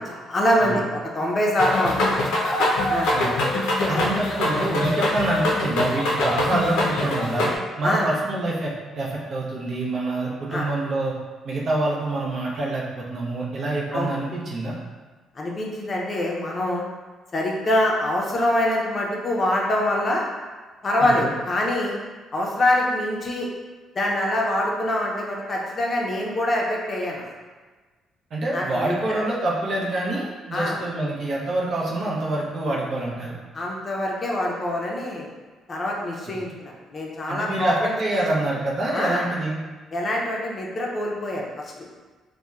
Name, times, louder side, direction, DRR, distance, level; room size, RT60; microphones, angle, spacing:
voice 1, 0.1-2.2 2.9-3.1 3.9-4.1 7.8-8.1 10.5-10.7 13.9-14.1 15.4-16.9 17.3-20.2 20.8-22.0 22.3-23.5 24.0-27.2 28.5-29.2 30.5-30.8 33.5-35.3 35.7-37.9 38.9-39.3 39.9-41.7, left 1 dB, 35° left, -2 dB, 0.5 m, -24 dB
sound 1, 1.6-7.6, left 1 dB, 85° left, 0.5 m, -23 dB
voice 2, 3.9-7.5 7.8-11.1 11.4-14.7 21.0-21.3 28.3-33.3 37.3-39.6, right 2 dB, 55° right, -4 dB, 0.6 m, -26 dB
2.8 x 2.1 x 2.3 m, 1.3 s
cardioid pair, 95°, 0 cm